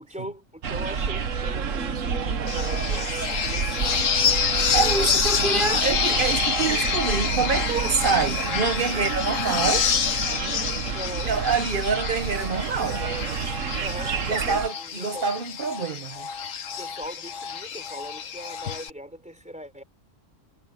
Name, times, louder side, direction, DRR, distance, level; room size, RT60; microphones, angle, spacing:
voice 1, 0.0-4.4 4.7-5.2 8.9-9.4 10.9-11.4 13.8-15.3 16.8-19.8, equal, 5° right, 4.4 m, -40 dB
sound 1, 0.6-14.7, right 6 dB, 80° right, 1.6 m, -29 dB
sound 2, 2.5-18.9, left 7 dB, 85° left, 1.4 m, -28 dB
voice 2, 4.7-9.9 11.3-13.0 14.3-16.3, right 5 dB, 45° right, 1.1 m, -26 dB
omnidirectional pair, 1.3 m